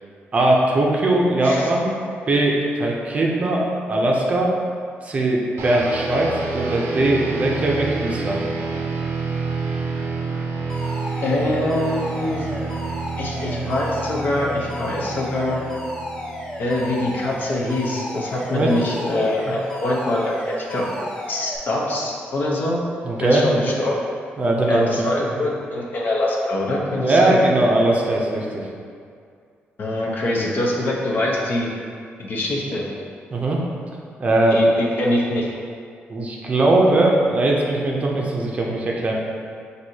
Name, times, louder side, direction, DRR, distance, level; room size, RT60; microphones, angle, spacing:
voice 1, 0.3-1.9 2.3-4.5 5.0-8.4 18.5-18.7 23.0-23.6 24.4-25.1 27.0-28.6 33.3-33.6 34.2-34.6 36.1-39.1, right 2 dB, 35° right, -2 dB, 0.5 m, -20 dB
sound 1, 5.6-17.3, right 4 dB, 85° right, 0.5 m, -29 dB
Alarm, 10.7-21.6, left 1 dB, 15° left, 0.6 m, -33 dB
voice 2, 11.2-12.5 13.2-15.6 16.6-20.9 21.3-22.8 23.2-24.0 24.7-27.4 29.8-31.7 32.2-32.8 34.5-35.5, left 1 dB, 50° left, -3 dB, 0.7 m, -24 dB
6.0 x 2.7 x 2.7 m, 2.3 s
cardioid pair, 145°, 4 cm